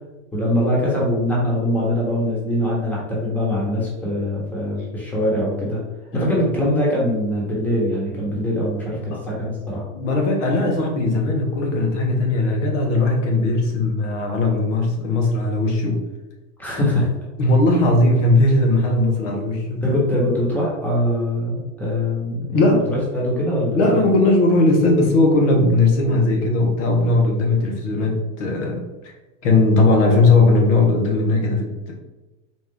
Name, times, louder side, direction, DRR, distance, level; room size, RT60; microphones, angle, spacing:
voice 1, 0.3-5.8 6.1-9.8 16.6-17.1 19.8-23.9, left 1 dB, 5° left, -5 dB, 1.1 m, -22 dB
voice 2, 6.1-6.5 9.1-9.2 9.9-16.0 17.4-19.9 22.5-22.9 23.7-29.1 29.4-31.9, left 2 dB, 70° left, 1 dB, 1.1 m, -18 dB
4.2 x 2.4 x 3.6 m, 1.1 s
supercardioid pair, 130°, 38 cm